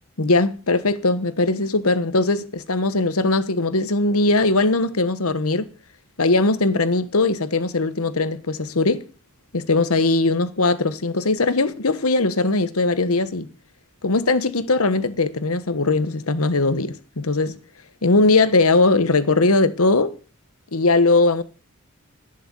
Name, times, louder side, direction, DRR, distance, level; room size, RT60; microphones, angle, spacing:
voice 1, 0.2-5.7 6.2-9.0 9.5-13.5 14.0-17.6 18.0-20.1 20.7-21.4, left 3 dB, 80° left, 1.3 m, -20 dB
11.5 x 10.0 x 7.5 m
head